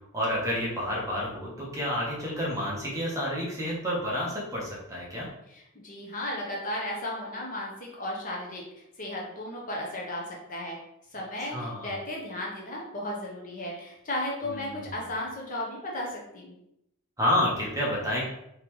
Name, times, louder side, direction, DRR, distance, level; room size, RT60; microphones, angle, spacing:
voice 1, 0.1-5.3 11.4-11.9 14.5-15.0 17.2-18.2, left 1 dB, 15° right, -5 dB, 1.0 m, -29 dB
voice 2, 5.5-8.6 9.0-10.8 11.1-16.5, left 1 dB, 35° left, -3 dB, 0.8 m, -35 dB
3.8 x 3.2 x 3.0 m, 0.80 s
head